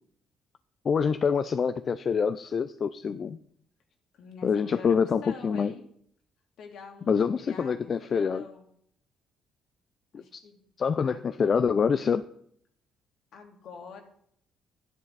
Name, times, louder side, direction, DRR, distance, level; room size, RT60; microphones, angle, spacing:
voice 1, 0.8-3.4 4.4-5.7 7.1-8.4 10.1-10.2 10.8-12.2, left 6 dB, 45° left, 12 dB, 0.5 m, -26 dB
voice 2, 4.1-5.9 6.6-8.7 10.1-10.6 11.0-11.3 13.3-14.0, left 5 dB, 70° left, 2 dB, 2.8 m, -46 dB
12.5 x 10.5 x 4.1 m, 0.66 s
cardioid pair, 90°, 0 cm